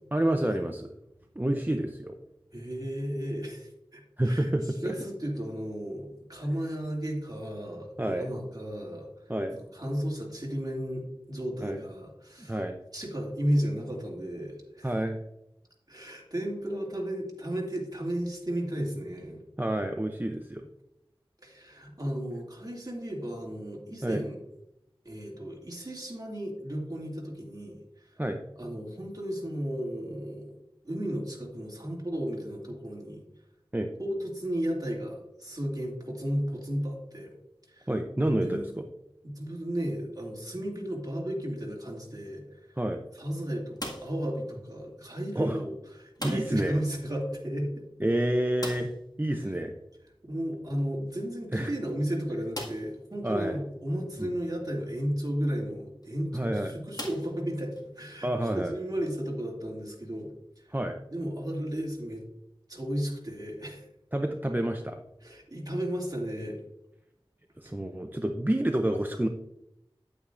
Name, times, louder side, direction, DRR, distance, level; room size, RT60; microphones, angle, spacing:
voice 1, 0.1-0.9 1.4-2.2 4.2-4.9 8.0-8.3 9.3-9.6 11.6-11.8 12.4-12.7 14.8-15.2 19.6-20.6 24.0-24.2 28.2-28.4 33.7-33.9 37.9-38.7 42.8-43.0 45.4-45.6 46.2-46.8 48.0-48.9 49.2-49.7 51.5-51.7 53.2-53.6 54.2-54.3 56.3-56.8 58.2-58.7 60.7-61.0 64.1-65.0 67.6-69.3, right 1 dB, 20° right, 4 dB, 0.6 m, -28 dB
voice 2, 2.5-4.5 4.8-9.1 9.6-12.6 12.9-14.9 15.9-19.4 21.4-24.4 25.0-27.8 28.6-30.5 30.8-33.2 34.0-37.3 37.7-37.9 38.4-38.7 39.2-42.7 43.1-47.7 49.4-49.5 50.2-60.3 61.1-62.2 62.7-63.9 65.2-66.6, equal, 40° right, -2 dB, 2.4 m, -34 dB
sound 1, 43.7-44.3 46.1-46.7 47.0-47.1 47.4-47.5 48.6-49.1 50.9-51.0 51.6-51.7 52.5-53.0 53.7-53.8 55.8-56.1 56.9-57.8, left 1 dB, 45° left, 1.9 m, -39 dB
9.6 x 8.7 x 2.5 m, 0.84 s
wide cardioid pair, 45°, 10 cm